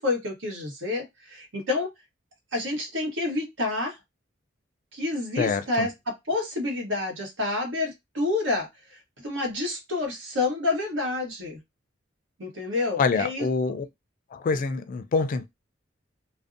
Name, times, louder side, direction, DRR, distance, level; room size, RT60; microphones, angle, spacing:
voice 1, 0.0-1.9 2.5-4.0 4.9-11.6 12.4-13.8, left 2 dB, 85° right, 1.0 m, -29 dB
voice 2, 5.4-5.9 13.0-13.8 14.3-15.5, left 4 dB, 45° left, 0.3 m, -26 dB
2.5 x 2.0 x 2.4 m
head